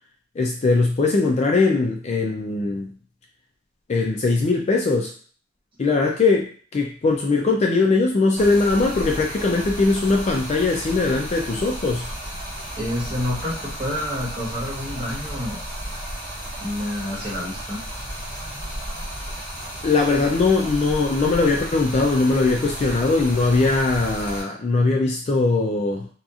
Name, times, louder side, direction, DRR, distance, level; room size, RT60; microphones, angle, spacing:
voice 1, 0.4-2.9 3.9-5.1 5.8-12.1 19.8-26.1, left 3 dB, 35° left, 1 dB, 0.3 m, -20 dB
Stream, 8.4-24.4, equal, 10° left, 0.8 m, -33 dB
voice 2, 12.8-15.6 16.6-17.8, left 1 dB, 25° right, -7 dB, 1.2 m, -28 dB
2.8 x 2.4 x 2.4 m, 0.43 s
head